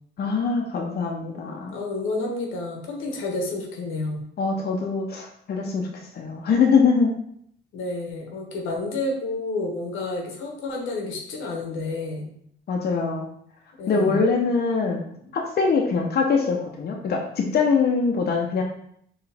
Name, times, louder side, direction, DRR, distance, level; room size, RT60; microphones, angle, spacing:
voice 1, 0.2-1.8 4.4-5.9 6.1-7.1 12.7-13.2 13.9-15.0 15.3-18.6, left 5 dB, 50° left, 0 dB, 0.8 m, -23 dB
voice 2, 1.3-4.3 7.7-12.3 13.8-14.2, left 2 dB, 85° left, 1 dB, 1.1 m, -30 dB
4.7 x 3.1 x 3.4 m, 0.68 s
cardioid pair, 90°, 20 cm